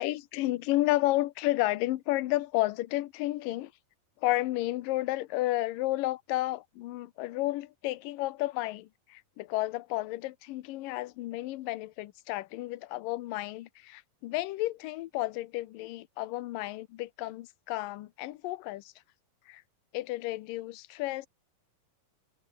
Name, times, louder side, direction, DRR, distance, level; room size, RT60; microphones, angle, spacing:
voice 1, 0.0-3.7 4.2-18.9 19.5-19.6 19.9-21.3, left 17 dB, 75° left, 2.5 m, -32 dB
omnidirectional pair, 4.2 m